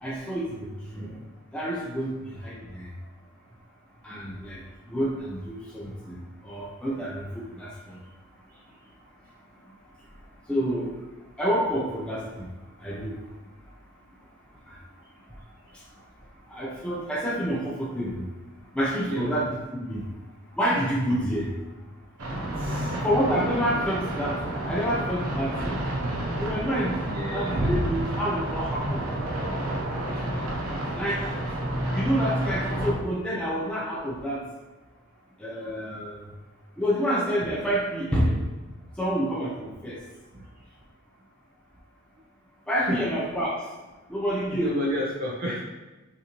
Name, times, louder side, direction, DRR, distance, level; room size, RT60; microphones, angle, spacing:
voice 1, 0.0-1.2 1.5-2.9 4.0-4.6 4.9-6.2 6.4-7.3 7.6-8.0 10.5-10.9 11.4-12.5 12.8-13.2 14.7-14.8 16.5-18.3 18.7-19.6 19.9-20.1 20.6-21.5 23.0-25.8 26.4-27.0 27.3-29.1 31.0-31.3 31.9-34.4 35.4-36.2 36.8-38.4 39.0-40.0 42.7-43.6 44.1-45.0, equal, 5° left, -5 dB, 0.5 m, -28 dB
sound 1, 22.2-32.9, right 1 dB, 90° right, 0.9 m, -29 dB
voice 2, 22.5-23.0 26.8-27.8 30.1-30.2 40.3-40.5 42.8-43.0 44.5-45.6, right 1 dB, 45° right, -4 dB, 0.5 m, -33 dB
5.8 x 2.6 x 3.0 m, 1.2 s
head